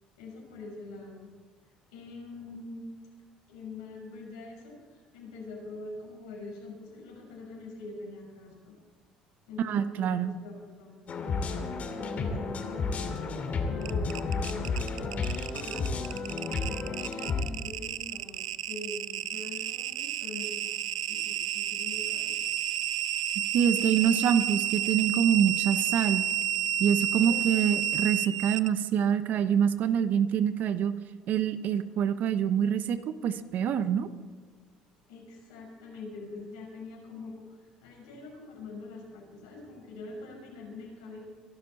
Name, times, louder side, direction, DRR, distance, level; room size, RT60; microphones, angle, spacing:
voice 1, 0.2-1.3 1.9-3.0 3.5-8.7 9.5-13.1 13.6-15.8 17.0-18.4 18.7-22.4 23.7-24.1 27.1-27.6 35.1-41.2, left 3 dB, 80° left, -1 dB, 5.7 m, -44 dB
voice 2, 9.6-10.3 23.5-26.2 26.8-30.9 31.3-34.1, right 8 dB, 60° right, 12 dB, 1.0 m, -26 dB
sound 1, 11.1-17.4, left 4 dB, 45° left, 2.7 m, -32 dB
sound 2, 13.8-28.7, right 10 dB, 90° right, 0.4 m, -31 dB
23.5 x 12.0 x 4.2 m, 1.5 s
hypercardioid pair, 60°, 3 cm